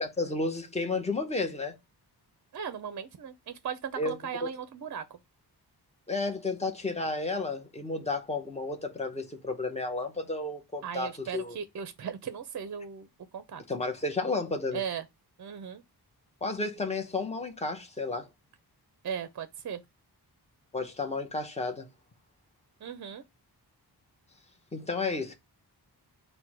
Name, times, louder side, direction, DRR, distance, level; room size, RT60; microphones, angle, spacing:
voice 1, 0.2-1.8 4.0-4.2 4.4-4.5 6.1-11.6 13.7-14.8 16.4-18.3 20.7-21.9 24.7-25.3, left 3 dB, 15° left, 0.7 m, -32 dB
voice 2, 2.5-5.2 10.8-13.1 13.3-13.6 14.7-15.0 15.4-15.8 19.0-19.8 22.8-23.2, right 7 dB, 50° right, 0.5 m, -37 dB
4.4 x 2.2 x 4.6 m
wide cardioid pair, 160°, 39 cm